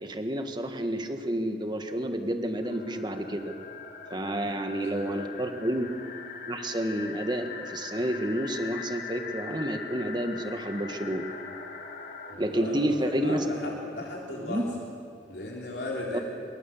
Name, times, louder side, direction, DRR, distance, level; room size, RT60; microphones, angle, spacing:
voice 1, 0.0-3.5 4.1-5.9 6.5-11.2 12.4-13.4 14.4-14.6 16.1-16.2, right 1 dB, 25° right, 6 dB, 1.5 m, -30 dB
sound 1, 2.6-12.4, left 5 dB, 50° left, 2.6 m, -41 dB
voice 2, 4.3-5.2 12.3-14.7 15.3-16.2, left 1 dB, 70° left, -3 dB, 3.5 m, -37 dB
26.0 x 23.0 x 7.3 m, 2.4 s
head